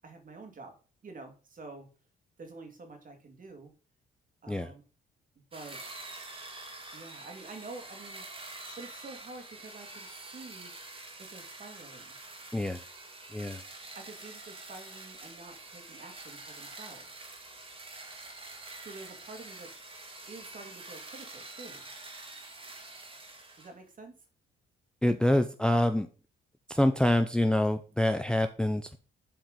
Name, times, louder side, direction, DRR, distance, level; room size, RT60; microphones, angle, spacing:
voice 1, 0.0-0.8 1.0-1.9 2.4-3.7 4.4-4.8 5.5-5.8 6.9-10.7 11.2-12.2 14.0-17.3 18.8-19.7 20.3-21.9 23.6-24.1, right 3 dB, 45° right, 5 dB, 2.3 m, -48 dB
sound 1, 5.5-23.7, right 2 dB, 25° right, 2.2 m, -46 dB
voice 2, 25.0-26.1 26.7-29.0, left 1 dB, 5° left, 8 dB, 0.6 m, -26 dB
7.5 x 4.7 x 5.2 m, 0.36 s
cardioid pair, 90°, 20 cm